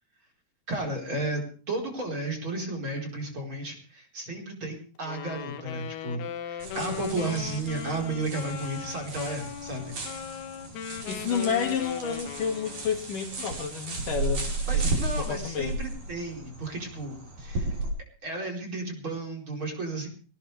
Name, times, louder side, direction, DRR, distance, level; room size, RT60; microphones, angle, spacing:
voice 1, 0.7-10.0 14.7-17.7 18.2-20.1, right 2 dB, 30° right, 1 dB, 5.2 m, -33 dB
Wind instrument woodwind instrument, 5.0-13.0, left 10 dB, 90° left, 3.2 m, -39 dB
sound 1, 6.6-17.9, right 3 dB, 50° right, 6.2 m, -34 dB
voice 2, 11.1-14.8 15.2-15.8, left 6 dB, 60° left, 4 dB, 3.5 m, -30 dB
20.0 x 19.0 x 3.5 m, 0.39 s
omnidirectional pair, 4.4 m